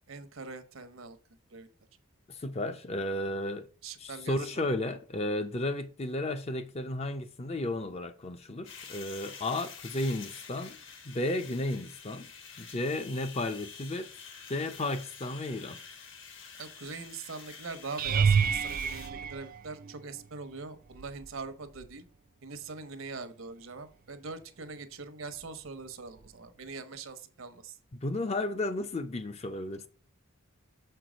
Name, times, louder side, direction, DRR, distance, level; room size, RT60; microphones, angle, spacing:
voice 1, 0.1-1.2 1.5-1.7 3.8-4.7 16.5-22.0 22.4-27.8, right 4 dB, 70° right, 0.9 m, -42 dB
voice 2, 2.3-3.7 4.0-10.8 11.1-12.3 12.6-14.1 14.5-15.8 27.9-29.9, left 1 dB, 30° left, 0.5 m, -33 dB
sound 1, 8.6-19.1, left 6 dB, 60° left, 1.2 m, -48 dB
sound 2, 18.0-20.3 20.9-21.4 21.8-21.9 26.3-26.4, right 6 dB, 40° right, 0.3 m, -28 dB
6.8 x 4.6 x 5.0 m
head